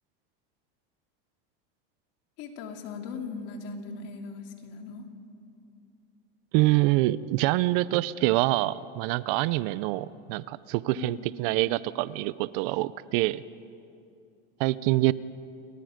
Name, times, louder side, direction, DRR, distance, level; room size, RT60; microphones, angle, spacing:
voice 1, 2.4-5.1 10.9-11.3, left 5 dB, 55° left, 3 dB, 3.0 m, -39 dB
voice 2, 6.5-13.4 14.6-15.1, right 18 dB, 65° right, 18 dB, 0.7 m, -25 dB
29.0 x 22.5 x 5.2 m, 2.5 s
supercardioid pair, 140°, 29 cm